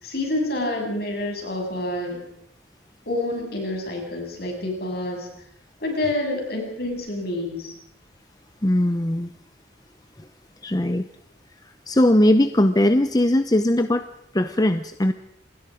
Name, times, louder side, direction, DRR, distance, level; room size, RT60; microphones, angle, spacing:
voice 1, 0.0-2.2 3.1-5.3 5.8-7.7, left 1 dB, 55° left, 1 dB, 7.5 m, -28 dB
voice 2, 8.6-9.3 10.2-10.3 10.6-11.1 11.6-14.1 14.3-15.1, left 1 dB, 20° left, 9 dB, 0.7 m, -20 dB
27.5 x 20.0 x 5.1 m, 0.71 s
head